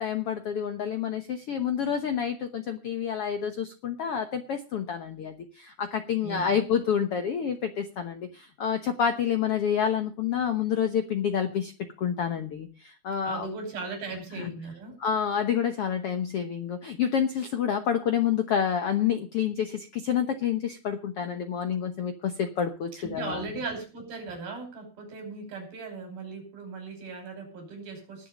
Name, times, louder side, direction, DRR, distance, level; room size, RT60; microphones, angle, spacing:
voice 1, 0.0-11.7 12.0-13.5 14.4-14.5 15.0-23.5, left 8 dB, 75° left, 8 dB, 1.3 m, -28 dB
voice 2, 13.2-15.0 23.0-28.3, right 3 dB, 70° right, 5 dB, 7.2 m, -38 dB
20.5 x 7.3 x 5.1 m, 0.35 s
omnidirectional pair, 4.3 m